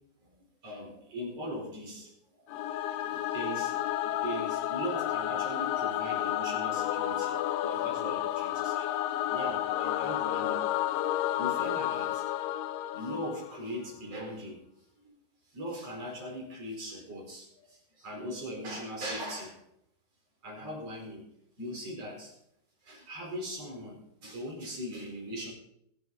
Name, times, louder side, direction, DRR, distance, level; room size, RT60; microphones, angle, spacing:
voice 1, 0.2-2.1 2.4-8.9 9.3-10.7 11.3-12.2 12.9-14.6 15.0-15.1 15.5-19.6 20.4-21.2 21.6-22.3 22.8-25.5, equal, 40° right, -1 dB, 5.3 m, -40 dB
Singing / Musical instrument, 2.5-13.8, left 13 dB, 90° left, 2.7 m, -31 dB
22.5 x 10.0 x 4.1 m, 0.76 s
omnidirectional pair, 4.6 m